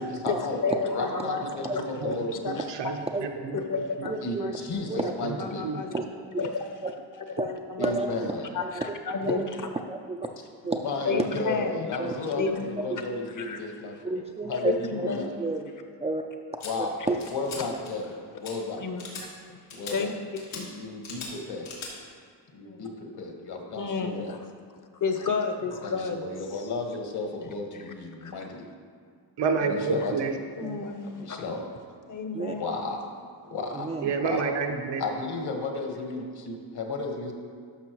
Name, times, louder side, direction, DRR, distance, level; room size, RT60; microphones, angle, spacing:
voice 1, 0.0-2.7 4.2-5.7 7.8-8.5 10.8-15.3 16.6-18.8 19.7-20.1 20.5-21.7 22.5-24.4 25.8-28.6 29.7-30.1 31.2-31.6 32.5-33.1 33.4-33.9 34.2-34.5 35.0-37.3, left 3 dB, 60° left, 2 dB, 1.5 m, -34 dB
voice 2, 0.6-2.2 2.4-2.6 3.5-4.5 4.9-5.1 5.4-5.9 6.4-7.9 8.5-9.7 11.1-12.7 13.0-13.1 13.4-13.6 14.5-15.3 18.8-19.6 19.9-20.1 20.5-20.7 23.8-24.4 24.9-26.2 26.5-26.7 28.2-28.3 30.6-31.4 32.1-32.6, left 4 dB, 45° left, 6 dB, 0.9 m, -32 dB
voice 3, 2.4-3.6 4.0-4.1 5.2-5.4 5.6-5.8 29.4-30.4 34.0-35.0, right 5 dB, 70° right, 4 dB, 0.9 m, -29 dB
voice 4, 4.1-4.5 4.9-5.1 5.9-6.3 7.4-7.5 7.8-8.3 8.6-8.9 9.2-10.3 10.6-10.8 11.1-11.2 12.0-12.5 14.0-14.7 15.4-15.7 16.0-16.2 17.1-17.2 30.6-30.8 32.3-32.6 33.7-34.1, right 3 dB, 15° right, 2 dB, 0.4 m, -31 dB
sound 1, 16.6-16.7 17.2-17.6 17.8-18.1 18.4-18.5 19.0-19.2 19.7-19.9 20.4-20.6 21.0-21.3 21.6-21.9, left 4 dB, 90° left, 2.0 m, -39 dB
12.0 x 5.6 x 3.0 m, 2.1 s
cardioid pair, 75°, 45 cm